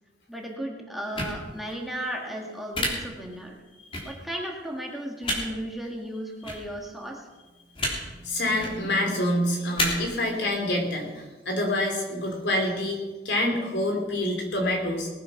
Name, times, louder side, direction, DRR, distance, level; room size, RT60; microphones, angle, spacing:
voice 1, 0.3-3.6 4.1-7.3, right 1 dB, ahead, -1 dB, 1.9 m, -35 dB
sound 1, 1.1-1.3 2.7-2.9 3.9-4.0 5.2-5.4 6.4-6.6 7.8-7.9 8.5-8.7 9.8-9.9, left 1 dB, 30° left, 3.4 m, -27 dB
sound 2, 8.0-10.6, right 3 dB, 65° right, 0.9 m, -36 dB
voice 2, 8.2-13.0 13.2-15.1, left 1 dB, 70° left, 2 dB, 3.3 m, -27 dB
19.5 x 9.1 x 5.9 m, 1.2 s
head